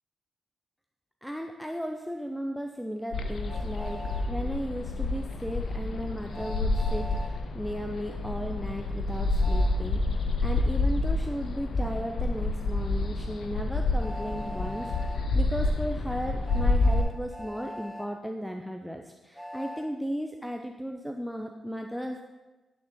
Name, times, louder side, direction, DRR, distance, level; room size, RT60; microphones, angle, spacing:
voice 1, 1.2-4.0 4.3-7.1 7.5-10.0 10.4-14.9 15.3-22.2, equal, ahead, 4 dB, 0.5 m, -35 dB
sound 1, 3.1-17.0, left 2 dB, 65° left, 0.5 m, -28 dB
Train, 3.5-4.3 6.3-7.3 9.4-9.7 11.8-11.9 14.0-15.2 16.4-18.1 19.3-19.9, equal, 20° left, 0.9 m, -41 dB
8.5 x 3.8 x 3.6 m, 1.1 s
supercardioid pair, 40°, 0 cm